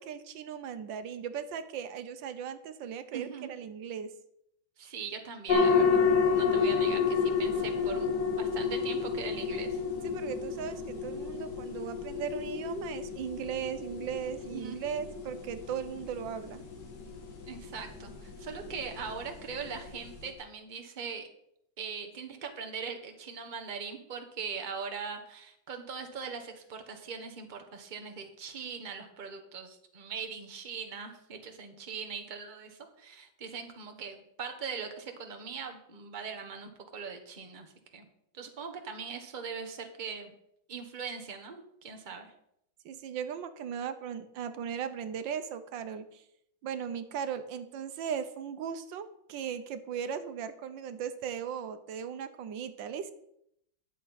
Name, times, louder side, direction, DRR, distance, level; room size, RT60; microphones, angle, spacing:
voice 1, 0.0-4.1 10.0-16.6 42.8-46.2 46.6-53.1, right 8 dB, 85° right, 10 dB, 1.5 m, -37 dB
voice 2, 3.1-3.5 4.8-6.0 6.3-9.8 14.5-14.8 17.4-21.3 21.8-38.1 38.3-40.3 40.7-42.3, right 6 dB, 30° right, 3 dB, 1.3 m, -41 dB
sound 1, 5.5-20.3, left 5 dB, 65° left, 2.2 m, -31 dB
11.0 x 7.6 x 5.7 m, 0.75 s
omnidirectional pair, 2.0 m